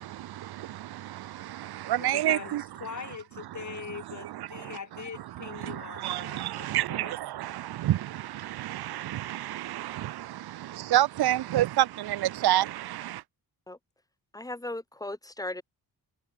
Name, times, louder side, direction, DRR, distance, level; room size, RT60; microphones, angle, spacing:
voice 1, 0.0-2.6 4.6-4.8 5.6-13.2, right 14 dB, 80° right, 0.6 m, -29 dB
voice 2, 1.9-7.2, left 6 dB, 50° left, 6.0 m, -42 dB
voice 3, 14.3-15.6, left 1 dB, 10° left, 1.7 m, -37 dB
wide cardioid pair, 155°, 38 cm